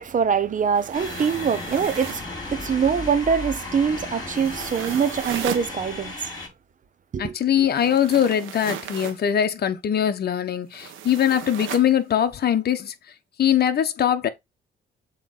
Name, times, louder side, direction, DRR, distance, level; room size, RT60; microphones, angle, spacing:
voice 1, 0.0-6.1 7.1-7.3, right 6 dB, 40° right, 0.9 m, -24 dB
sound 1, 0.7-2.3 4.3-5.7 7.7-9.2 10.7-11.9, right 9 dB, 80° right, 1.3 m, -36 dB
sound 2, 0.9-6.5, left 2 dB, 20° left, 3.7 m, -35 dB
voice 2, 7.2-12.9 13.4-14.3, left 9 dB, 55° left, 1.1 m, -22 dB
7.6 x 3.2 x 4.2 m
cardioid pair, 90°, 20 cm